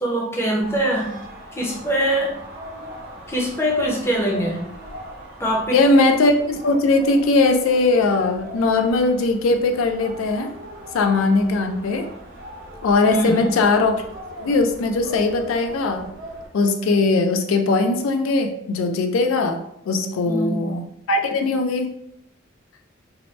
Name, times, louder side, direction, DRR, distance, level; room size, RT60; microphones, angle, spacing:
voice 1, 0.0-1.1 1.5-2.4 3.3-4.6 5.4-5.8 13.1-13.5 20.3-20.7, equal, 15° left, -2 dB, 0.5 m, -23 dB
sound 1, 0.6-16.5, right 1 dB, 50° right, 0.7 m, -40 dB
voice 2, 5.7-10.5 10.9-12.1 12.8-14.0 14.4-16.0 16.5-21.9, left 3 dB, 90° left, 5 dB, 0.3 m, -20 dB
2.7 x 2.0 x 3.1 m, 0.75 s
head